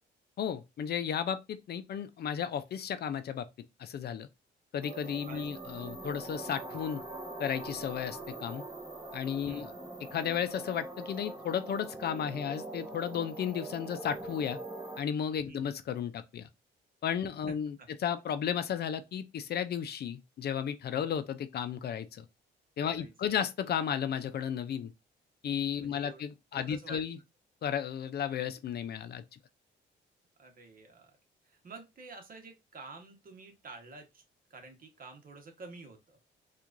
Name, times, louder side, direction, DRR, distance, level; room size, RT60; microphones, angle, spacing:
voice 1, 0.4-3.5 3.8-4.3 4.7-7.0 7.4-8.6 9.1-9.7 10.1-14.6 15.0-16.5 17.0-17.8 18.0-22.2 22.8-24.9 25.4-27.2 27.6-29.2, left 8 dB, 55° left, 0.5 m, -34 dB
sound 1, 4.8-15.0, right 2 dB, 15° right, 0.9 m, -43 dB
voice 2, 5.3-5.9 9.5-9.7 15.4-15.6 17.5-17.6 22.8-23.3 25.8-26.2 26.5-27.0 30.4-31.2 31.4-34.2 34.5-36.2, right 3 dB, 45° right, 1.2 m, -49 dB
4.5 x 2.5 x 2.5 m
cardioid pair, 90°, 20 cm